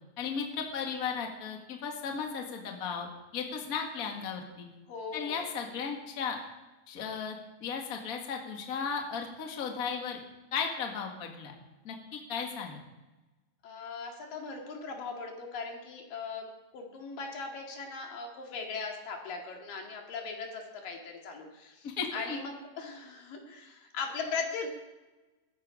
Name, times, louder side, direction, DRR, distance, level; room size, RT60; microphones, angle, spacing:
voice 1, 0.2-4.7 5.1-6.4 6.9-10.2 10.5-11.5 11.8-12.8 21.8-22.4, left 6 dB, 35° left, 2 dB, 1.6 m, -35 dB
voice 2, 4.9-5.4 13.6-16.5 16.7-24.7, left 4 dB, 80° left, 1 dB, 3.8 m, -39 dB
16.0 x 14.5 x 5.0 m, 1.1 s
omnidirectional pair, 3.9 m